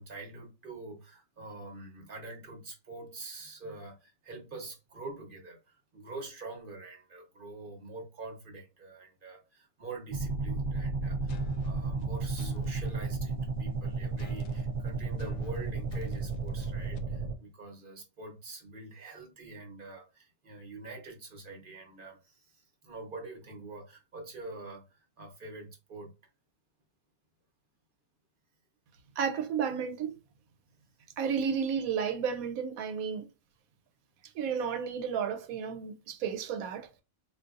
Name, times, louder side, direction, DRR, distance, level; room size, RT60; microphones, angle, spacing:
voice 1, 0.0-26.1, right 2 dB, 40° right, 1.0 m, -45 dB
sound 1, 10.1-17.4, right 3 dB, 60° right, 0.5 m, -33 dB
sound 2, 11.3-12.9 14.2-17.0, left 7 dB, 75° left, 0.9 m, -48 dB
voice 2, 29.2-30.2 31.2-33.3 34.3-37.0, right 7 dB, 85° right, 1.1 m, -32 dB
3.8 x 2.6 x 2.4 m
omnidirectional pair, 1.4 m